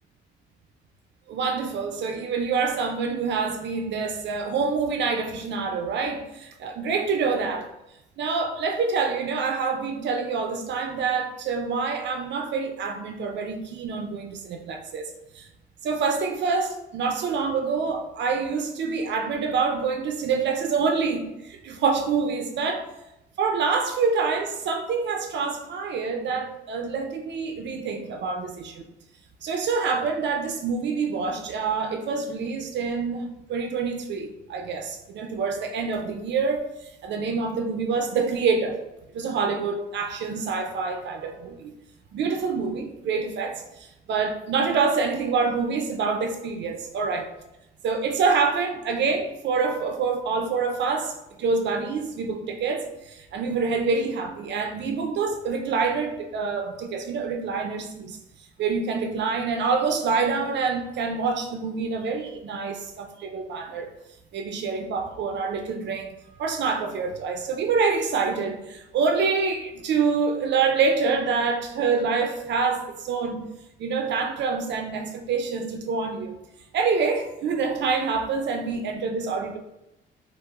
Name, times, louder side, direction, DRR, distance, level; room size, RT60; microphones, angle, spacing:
voice 1, 1.3-7.7 8.2-15.5 15.8-22.8 23.4-28.8 29.4-38.8 39.1-41.7 42.1-47.3 47.8-58.2 58.6-63.9 64.3-73.5 73.8-76.4 76.7-79.6, right 5 dB, 65° right, 5 dB, 0.4 m, -26 dB
4.6 x 2.0 x 2.2 m, 0.90 s
cardioid pair, 90°, 20 cm